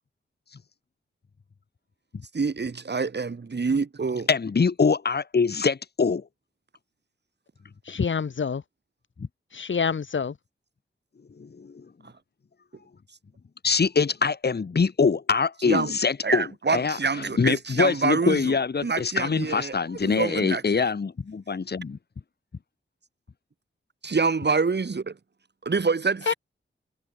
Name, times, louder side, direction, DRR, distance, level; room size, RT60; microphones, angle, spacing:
voice 1, 2.3-4.3 12.0-12.1 15.6-15.9 16.2-18.6 18.8-19.7 20.0-20.9 24.0-25.2 25.6-26.3, right 4 dB, 55° right, 4.3 m, -26 dB
voice 2, 4.3-6.2 9.2-9.3 11.4-11.9 13.6-16.5 16.7-17.0 17.4-22.0, left 5 dB, 55° left, 1.8 m, -24 dB
voice 3, 7.9-8.6 9.5-10.3 26.3-26.4, left 6 dB, 70° left, 1.9 m, -27 dB
wide cardioid pair, 80°, 21 cm